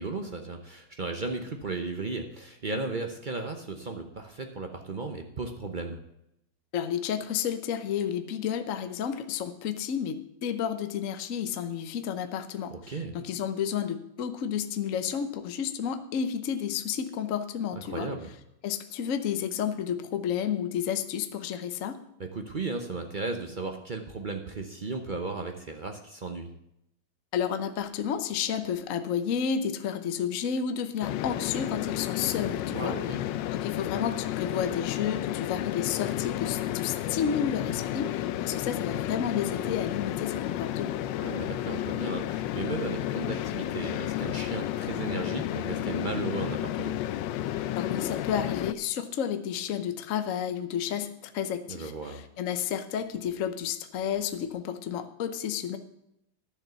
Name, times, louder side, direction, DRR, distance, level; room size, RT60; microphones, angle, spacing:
voice 1, 0.0-6.0 12.7-13.1 17.8-18.3 22.2-26.5 32.7-33.2 41.2-47.0 51.7-52.3, right 3 dB, 60° right, 4 dB, 0.5 m, -35 dB
voice 2, 6.7-10.2 10.4-18.1 18.6-22.0 27.3-33.0 33.5-41.0 47.8-55.8, left 8 dB, 55° left, 9 dB, 0.9 m, -31 dB
sound 1, 31.0-48.7, left 13 dB, 75° left, 1.1 m, -32 dB
11.0 x 7.2 x 6.8 m, 0.79 s
omnidirectional pair, 2.2 m